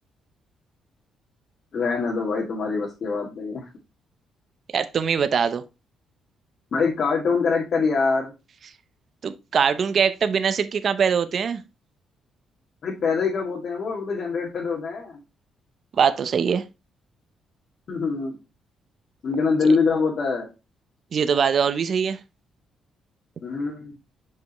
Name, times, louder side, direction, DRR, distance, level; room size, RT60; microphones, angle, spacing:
voice 1, 1.7-3.6 6.7-8.3 12.8-15.2 17.9-18.4 19.2-20.5 23.4-24.0, left 4 dB, 55° left, 2.0 m, -24 dB
voice 2, 4.7-5.6 9.2-11.6 16.0-16.6 21.1-22.2, right 6 dB, 55° right, 0.7 m, -22 dB
6.9 x 5.4 x 3.0 m
cardioid pair, 90°, 0 cm